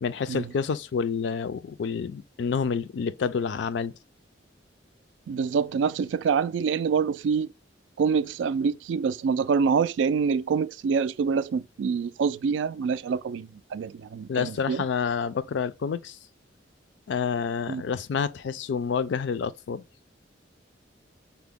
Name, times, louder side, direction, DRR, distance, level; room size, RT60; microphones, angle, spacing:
voice 1, 0.0-3.9 14.3-16.2 17.1-19.8, left 6 dB, 65° left, 0.4 m, -28 dB
voice 2, 5.3-7.5 8.0-14.8 17.7-17.8, right 6 dB, 75° right, 0.3 m, -26 dB
5.8 x 2.1 x 3.4 m
head